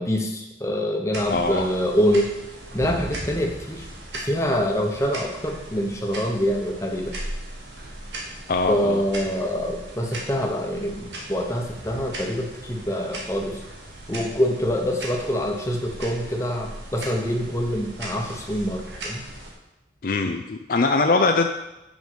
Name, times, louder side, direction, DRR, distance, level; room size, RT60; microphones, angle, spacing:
voice 1, 0.0-2.3 2.7-3.9 4.2-7.1 8.7-13.6 14.1-19.2, equal, 15° left, 2 dB, 1.0 m, -25 dB
sound 1, 1.1-19.5, right 1 dB, 75° right, 1.7 m, -38 dB
voice 2, 1.3-1.7 8.5-9.0 20.0-21.5, left 3 dB, 50° left, 5 dB, 0.4 m, -22 dB
7.2 x 5.3 x 6.2 m, 0.96 s
head